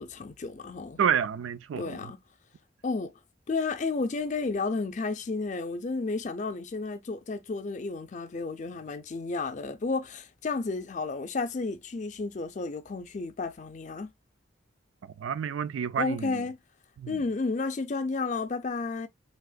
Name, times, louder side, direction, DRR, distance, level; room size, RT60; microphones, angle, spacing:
voice 1, 0.0-1.0 1.8-2.2 2.8-3.1 3.5-14.1 16.0-16.6 17.1-19.1, left 3 dB, 40° left, 0.4 m, -32 dB
voice 2, 1.0-2.1 15.0-16.5 17.0-17.2, right 7 dB, 85° right, 0.4 m, -30 dB
3.4 x 2.8 x 2.3 m
head